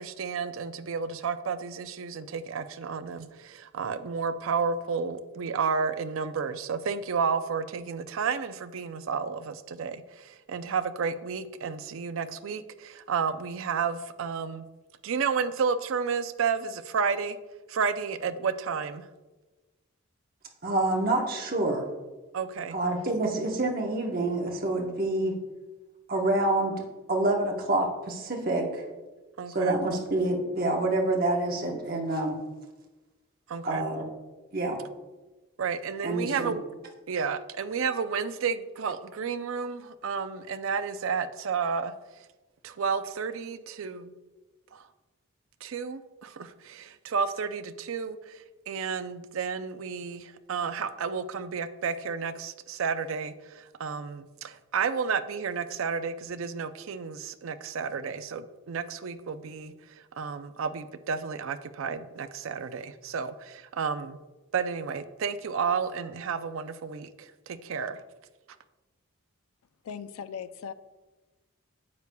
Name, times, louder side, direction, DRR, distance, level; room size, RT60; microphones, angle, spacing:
voice 1, 0.0-14.7 15.0-17.4 17.7-19.1 22.3-22.8 29.4-29.8 33.5-33.9 35.6-36.6 37.1-41.9 42.6-44.1 44.7-44.9 45.6-64.2 64.5-68.0, right 5 dB, 70° right, 0.4 m, -31 dB
voice 2, 20.6-21.8 22.7-25.3 26.1-26.8 27.1-28.8 29.5-32.4 33.6-34.0 34.5-34.8 36.0-36.5, right 2 dB, 45° right, 1.0 m, -27 dB
voice 3, 69.9-70.7, left 7 dB, 85° left, 0.4 m, -38 dB
9.5 x 6.7 x 2.2 m
head